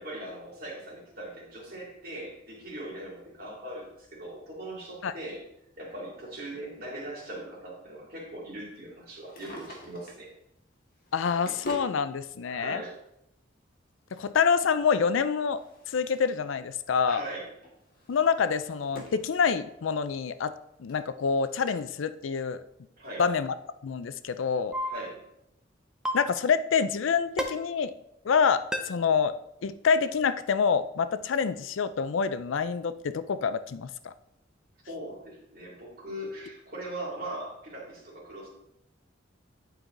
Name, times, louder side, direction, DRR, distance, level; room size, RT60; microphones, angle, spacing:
voice 1, 0.0-5.4 5.8-10.3 12.5-13.0 17.1-17.5 23.0-23.3 24.9-25.2 34.9-38.5, right 1 dB, 50° right, -4 dB, 2.7 m, -40 dB
Drawer open or close, 9.1-10.3 11.0-12.0 13.0-13.1 14.9-16.4 16.7-17.1 17.6-19.3 19.7-19.8 20.6-20.7 20.9-21.0 21.7-21.8, equal, 50° left, 1.6 m, -45 dB
voice 2, 11.1-12.8 14.1-15.6 15.9-17.2 18.1-20.5 20.8-22.6 23.2-23.5 23.8-24.8 26.1-27.9 28.2-29.3 29.6-34.1, left 6 dB, 80° left, 13 dB, 0.4 m, -26 dB
sound 1, 24.7-24.9 26.0-26.2 27.4-27.5 28.7-28.8, equal, 5° right, 0.6 m, -28 dB
9.3 x 4.7 x 3.8 m, 0.81 s
head